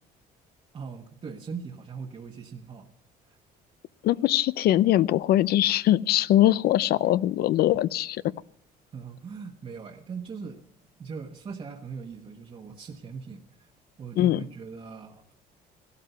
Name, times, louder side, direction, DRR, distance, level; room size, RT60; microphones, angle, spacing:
voice 1, 0.7-2.9 3.3-3.4 8.9-10.6 11.0-13.7 14.0-15.3, right 5 dB, 35° right, 1 dB, 1.2 m, -40 dB
voice 2, 4.0-8.2 14.2-14.4, left 13 dB, 65° left, 20 dB, 0.5 m, -22 dB
16.0 x 12.5 x 5.6 m, 0.69 s
cardioid pair, 110°, 17 cm